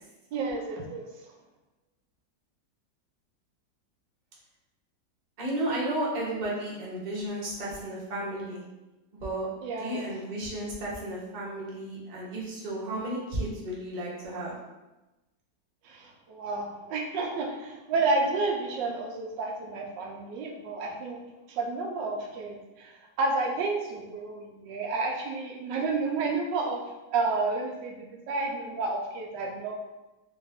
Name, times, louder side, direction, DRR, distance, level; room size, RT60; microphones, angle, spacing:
voice 1, 0.3-1.0 9.6-10.0 15.8-21.2 21.5-26.8 27.1-29.8, right 3 dB, 80° right, 1 dB, 1.3 m, -30 dB
voice 2, 5.4-8.6 9.1-14.5, right 1 dB, 35° right, -5 dB, 0.7 m, -33 dB
3.1 x 2.8 x 3.4 m, 1.0 s
omnidirectional pair, 1.9 m